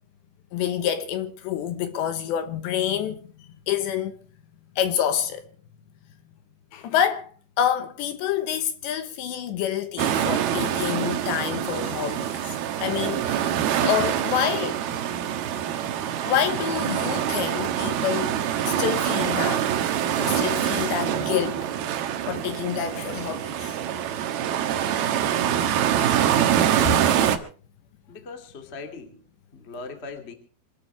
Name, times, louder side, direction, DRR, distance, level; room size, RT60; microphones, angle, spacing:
voice 1, 0.5-4.1 4.8-5.4 6.7-7.3 7.6-14.8 16.3-18.4 18.7-19.7 20.2-21.7 22.3-23.8, left 9 dB, 75° left, 3.0 m, -27 dB
sound 1, 10.0-27.4, right 10 dB, 65° right, 2.6 m, -25 dB
voice 2, 28.1-29.2 29.5-30.3, left 4 dB, 40° left, 0.9 m, -36 dB
25.5 x 13.0 x 3.4 m
omnidirectional pair, 6.0 m